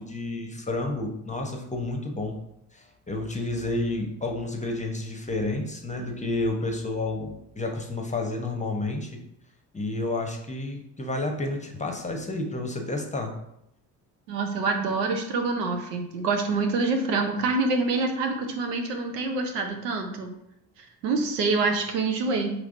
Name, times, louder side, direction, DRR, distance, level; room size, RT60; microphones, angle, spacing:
voice 1, 0.0-2.4 2.7-9.2 9.7-13.3, left 2 dB, 15° left, 3 dB, 0.8 m, -30 dB
voice 2, 14.3-20.3 21.0-22.5, right 3 dB, 85° right, 4 dB, 0.7 m, -26 dB
4.8 x 3.1 x 2.5 m, 0.79 s
hypercardioid pair, 50°, 48 cm